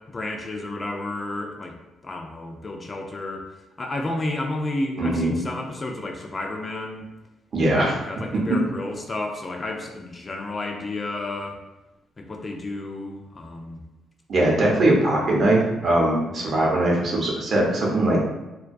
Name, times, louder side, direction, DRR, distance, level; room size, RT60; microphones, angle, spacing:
voice 1, 0.0-1.8 2.0-3.5 3.8-7.1 7.7-11.6 12.2-13.8, left 2 dB, 30° left, 2 dB, 0.3 m, -31 dB
voice 2, 5.0-5.4 7.5-8.0 14.3-18.2, right 1 dB, 55° right, -2 dB, 0.7 m, -21 dB
2.2 x 2.2 x 2.5 m, 1.0 s
cardioid pair, 90°, 0 cm